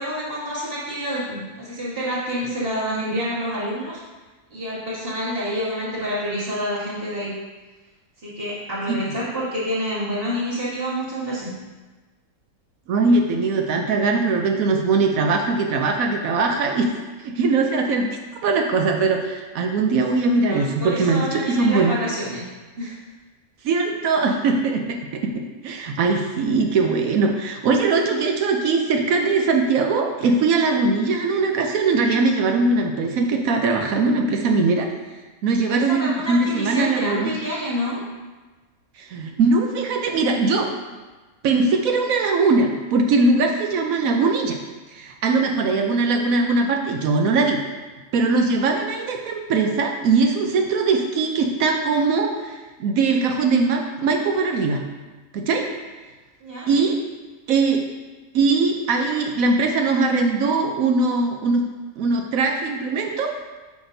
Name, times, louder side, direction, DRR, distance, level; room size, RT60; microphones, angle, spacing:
voice 1, 0.0-4.0 4.5-7.3 8.2-11.5 20.4-22.4 22.8-23.0 35.7-38.0 56.4-56.9, equal, 40° right, -8 dB, 2.4 m, -28 dB
voice 2, 12.9-16.9 17.2-22.0 23.6-25.3 25.6-34.9 35.4-37.3 39.0-40.7 41.4-44.6 44.9-47.6 48.1-54.8 55.3-55.7 56.7-57.0 57.5-57.8 58.3-61.6 62.0-63.3, right 3 dB, 80° right, 3 dB, 1.1 m, -21 dB
8.4 x 6.0 x 2.7 m, 1.3 s
omnidirectional pair, 1.5 m